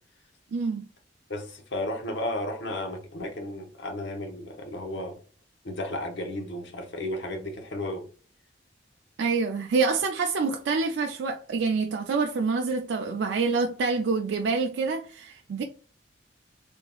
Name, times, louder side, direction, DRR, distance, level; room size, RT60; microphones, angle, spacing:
voice 1, 0.5-0.9 9.2-15.6, right 4 dB, 80° right, 0.4 m, -26 dB
voice 2, 1.3-5.2 5.6-8.1, left 1 dB, 75° left, 0.9 m, -33 dB
3.5 x 3.3 x 2.3 m
head